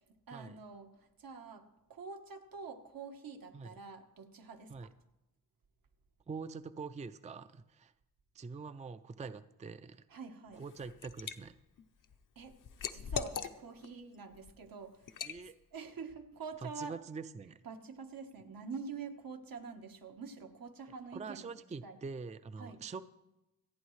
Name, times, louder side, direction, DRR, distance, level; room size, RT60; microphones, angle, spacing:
voice 1, 0.3-4.9 10.1-10.7 12.3-12.5 12.9-15.2 15.7-17.0 17.6-21.5 21.8-22.0 22.6-22.8, right 5 dB, 80° right, 5 dB, 1.3 m, -46 dB
voice 2, 6.3-7.9 8.3-10.1 10.5-11.5 15.2-15.6 16.6-17.6 21.1-23.0, right 4 dB, 20° right, 12 dB, 0.4 m, -44 dB
Liquid, 10.5-11.4 11.8-13.9 14.3-14.5 15.1-15.4, left 6 dB, 65° left, 0.7 m, -40 dB
26.5 x 9.3 x 3.2 m, 0.96 s
wide cardioid pair, 120°, 34 cm